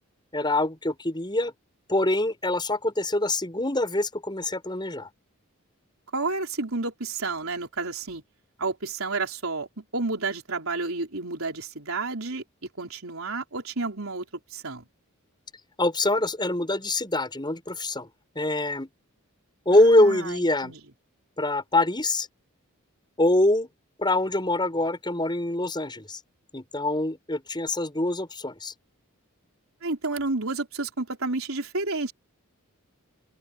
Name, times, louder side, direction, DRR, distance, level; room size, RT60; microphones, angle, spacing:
voice 1, 0.3-1.5 1.9-5.1 15.8-18.1 18.4-18.9 19.7-20.7 21.4-22.3 23.2-23.7 24.0-26.2 26.5-28.7, left 1 dB, 20° left, 7.2 m, -24 dB
voice 2, 6.1-8.2 8.6-12.4 12.8-14.2 14.5-14.8 19.7-20.8 29.8-32.1, right 3 dB, 70° right, 4.4 m, -30 dB
open air
head